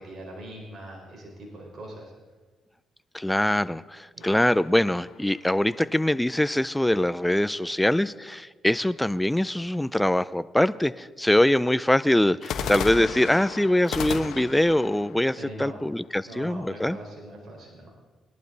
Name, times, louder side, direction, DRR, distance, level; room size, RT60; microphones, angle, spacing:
voice 1, 0.0-2.1 4.2-4.3 15.4-15.8 16.2-17.9, right 1 dB, 50° right, -2 dB, 4.8 m, -41 dB
voice 2, 3.1-17.0, left 1 dB, 5° left, 16 dB, 0.4 m, -23 dB
sound 1, 4.2-5.7 12.4-16.4, left 7 dB, 75° left, 1.1 m, -35 dB
20.5 x 11.5 x 4.0 m, 1.3 s
cardioid pair, 90°, 0 cm